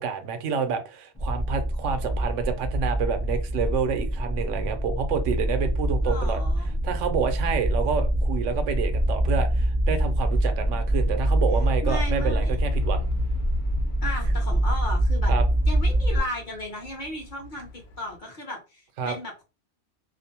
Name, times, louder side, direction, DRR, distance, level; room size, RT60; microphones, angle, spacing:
voice 1, 0.0-6.4 6.8-13.1 15.3-15.4 19.0-19.2, right 6 dB, 80° right, 0.9 m, -28 dB
sound 1, 1.2-16.2, right 1 dB, 15° left, 0.5 m, -25 dB
voice 2, 6.0-6.8 11.8-12.5 14.0-15.3 15.7-17.7 18.0-19.4, left 1 dB, 45° left, 0.8 m, -35 dB
Truck / Idling, 12.6-18.2, left 7 dB, 85° left, 1.0 m, -41 dB
2.5 x 2.0 x 2.7 m
omnidirectional pair, 1.3 m